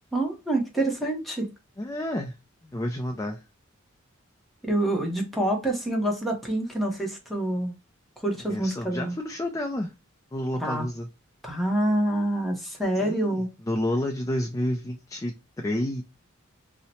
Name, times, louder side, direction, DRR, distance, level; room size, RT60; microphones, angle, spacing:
voice 1, 0.1-1.5 4.6-7.7 8.2-9.2 10.6-10.8 11.4-13.5, right 1 dB, ahead, 0.8 m, -26 dB
voice 2, 1.8-2.3 2.6-3.4 8.5-9.9 10.3-11.1 13.0-16.0, left 1 dB, 15° left, 0.4 m, -30 dB
2.8 x 2.1 x 4.0 m
head